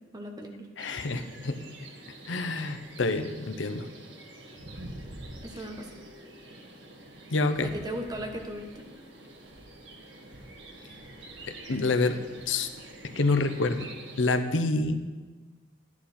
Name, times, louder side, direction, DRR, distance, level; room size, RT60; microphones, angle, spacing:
voice 1, 0.0-0.7 5.4-5.9 7.6-8.9, equal, 20° right, 3 dB, 1.1 m, -38 dB
voice 2, 0.8-1.6 2.2-3.9 7.3-7.7 11.5-12.2 12.5-12.7 13.2-13.9 14.2-15.0, left 3 dB, 90° left, 8 dB, 0.7 m, -27 dB
sound 1, 0.8-14.4, right 1 dB, 80° right, 1.6 m, -47 dB
11.5 x 10.0 x 4.3 m, 1.3 s
head